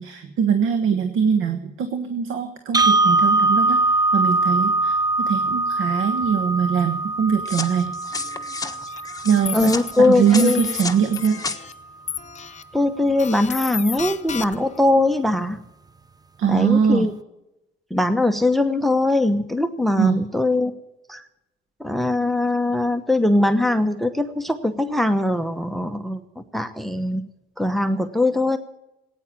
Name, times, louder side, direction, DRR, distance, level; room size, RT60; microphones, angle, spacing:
voice 1, 0.0-7.9 9.2-11.4 16.4-17.1 20.0-20.2, right 7 dB, 80° right, 8 dB, 1.4 m, -22 dB
sound 1, 2.7-10.8, right 2 dB, 20° right, 0.5 m, -22 dB
sound 2, 7.4-11.6, left 3 dB, 20° left, 1.4 m, -32 dB
sound 3, 8.9-9.0 9.5-9.9 10.4-10.8 11.1-11.7 12.1-12.6 13.2-14.8, left 7 dB, 35° left, 1.0 m, -31 dB
voice 2, 9.5-10.6 12.7-15.6 16.5-17.1 17.9-20.7 21.1-21.2 21.8-26.2 26.5-27.2 27.6-28.6, left 2 dB, ahead, 10 dB, 1.0 m, -21 dB
16.0 x 9.6 x 8.9 m, 0.92 s
cardioid pair, 90°, 20 cm